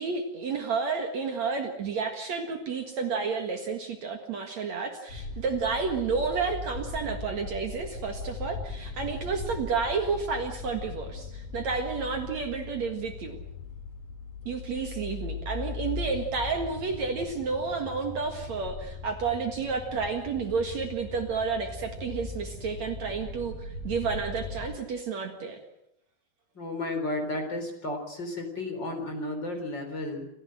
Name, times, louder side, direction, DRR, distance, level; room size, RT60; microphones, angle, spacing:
voice 1, 0.0-13.4 14.5-25.6, right 5 dB, 55° right, 5 dB, 2.7 m, -31 dB
sound 1, 5.1-24.7, left 3 dB, 75° left, 6.0 m, -39 dB
voice 2, 26.5-30.3, left 2 dB, 30° left, 4 dB, 4.3 m, -33 dB
28.5 x 15.5 x 7.7 m, 0.83 s
omnidirectional pair, 4.1 m